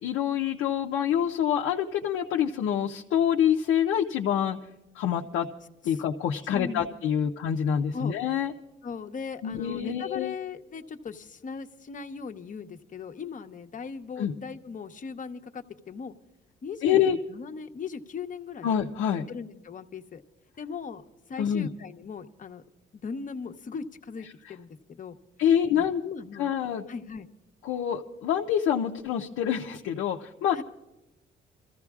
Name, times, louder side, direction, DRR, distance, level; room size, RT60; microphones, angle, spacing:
voice 1, 0.0-4.6 4.9-5.5 5.8-8.5 9.4-10.3 14.2-14.3 16.8-17.2 18.6-19.3 21.4-21.7 25.4-26.0 26.4-26.8 27.6-30.6, left 9 dB, 85° left, 0 dB, 0.6 m, -26 dB
voice 2, 6.5-6.9 7.9-8.1 8.8-16.1 16.6-18.7 19.3-20.2 20.6-21.0 21.3-22.6 22.9-25.2 25.7-26.6 26.9-27.3 30.5-30.6, left 5 dB, 40° left, 6 dB, 0.9 m, -38 dB
26.5 x 14.5 x 2.4 m, 1.0 s
cardioid pair, 90°, 20 cm